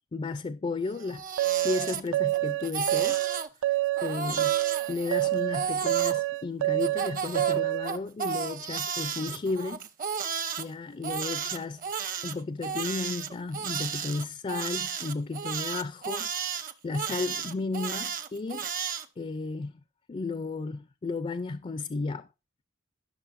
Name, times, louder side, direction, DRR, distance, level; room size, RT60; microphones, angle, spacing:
voice 1, 0.1-1.2 1.6-3.2 4.0-4.5 4.9-9.8 10.6-18.7 19.2-19.7 20.1-22.3, left 3 dB, 30° left, 0.4 m, -34 dB
Crying sobbing, 0.9-2.4 2.6-3.5 4.0-6.2 6.8-10.6 11.0-19.1, right 6 dB, 40° right, 0.8 m, -33 dB
sound 1, 1.4-7.9, right 16 dB, 70° right, 0.5 m, -27 dB
15.5 x 6.3 x 2.5 m
head